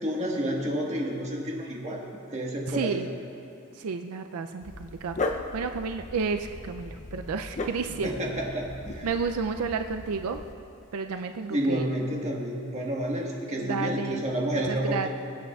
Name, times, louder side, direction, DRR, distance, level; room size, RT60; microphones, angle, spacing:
voice 1, 0.0-2.0 2.3-3.0 8.0-9.1 11.5-15.1, right 1 dB, 30° right, -2 dB, 1.4 m, -30 dB
voice 2, 2.7-3.1 3.7-8.1 9.0-10.4 10.9-11.9 13.6-14.3 14.5-15.1, right 5 dB, 85° right, 7 dB, 0.4 m, -31 dB
Dog, 4.6-10.5, left 2 dB, 35° left, 0.5 m, -37 dB
23.0 x 8.5 x 2.3 m, 2.7 s
head